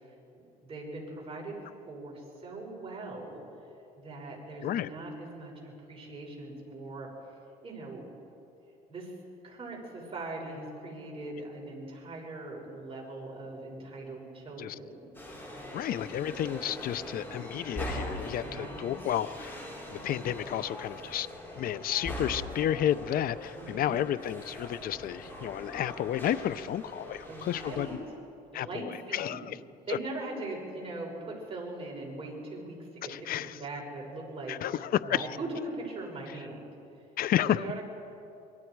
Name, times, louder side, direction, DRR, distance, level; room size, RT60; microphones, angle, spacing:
voice 1, 0.0-1.6 1.9-3.4 3.9-7.1 7.6-8.1 8.9-9.1 9.4-15.1 18.4-19.0 19.8-20.3 23.5-24.0 27.2-27.9 28.5-29.4 29.9-34.6 35.0-36.7 37.4-37.8, right 2 dB, 35° right, -2 dB, 6.1 m, -41 dB
voice 2, 4.6-4.9 14.6-14.8 15.7-19.6 19.9-21.3 21.6-27.9 28.5-29.6 29.9-30.0 33.1-33.6 34.5-35.3 37.2-37.6, left 11 dB, 60° left, 17 dB, 0.6 m, -31 dB
sound 1, 15.1-28.0, left 1 dB, 15° left, 6.2 m, -41 dB
25.5 x 23.5 x 4.7 m, 2.7 s
cardioid pair, 110°, 17 cm